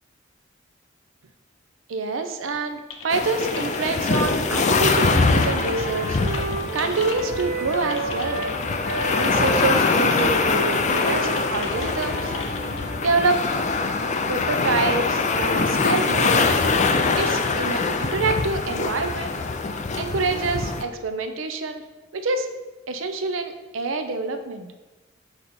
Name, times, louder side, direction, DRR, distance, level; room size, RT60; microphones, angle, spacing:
voice 1, 1.9-6.2 6.7-8.5 9.2-12.3 13.0-13.5 14.3-16.6 17.2-19.4 19.9-21.8 22.1-22.5 22.9-24.7, right 3 dB, 85° right, 7 dB, 0.6 m, -26 dB
Typing, 2.9-12.8, left 4 dB, 85° left, 0.9 m, -38 dB
sound 1, 3.1-20.8, left 4 dB, 35° left, 0.4 m, -23 dB
Wind instrument woodwind instrument, 4.6-8.5 8.8-13.1, right 3 dB, 50° right, 0.8 m, -32 dB
6.9 x 4.1 x 4.3 m, 1.2 s
head